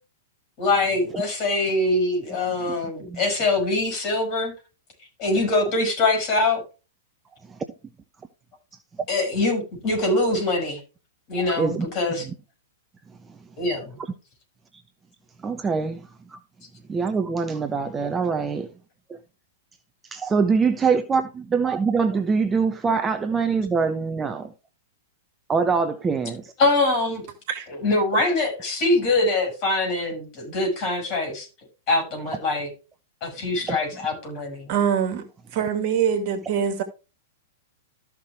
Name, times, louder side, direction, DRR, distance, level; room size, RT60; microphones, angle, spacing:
voice 1, 0.6-4.5 5.2-6.6 9.1-10.8 11.3-12.3 13.6-13.9 26.6-27.2 27.7-31.5 31.9-32.7 33.2-34.7, left 2 dB, 35° left, 6.6 m, -23 dB
voice 2, 11.5-11.9 15.4-16.0 16.3-16.4 16.9-18.7 20.1-24.5 25.5-26.4 33.7-33.8, right 5 dB, 15° right, 0.9 m, -23 dB
voice 3, 34.7-35.3 35.5-36.8, right 8 dB, 45° right, 2.0 m, -23 dB
13.5 x 6.1 x 3.4 m
figure-of-eight pair, 100°, 0 cm